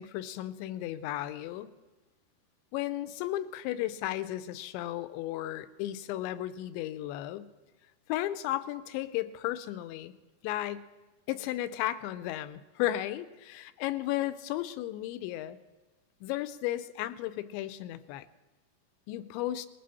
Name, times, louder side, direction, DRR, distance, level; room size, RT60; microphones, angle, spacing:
voice 1, 0.0-1.7 2.7-7.5 8.1-10.1 10.4-10.9 11.3-15.6 16.2-18.3 19.1-19.7, left 14 dB, 90° left, 13 dB, 2.9 m, -34 dB
20.0 x 15.0 x 4.2 m, 1.2 s
omnidirectional pair, 5.1 m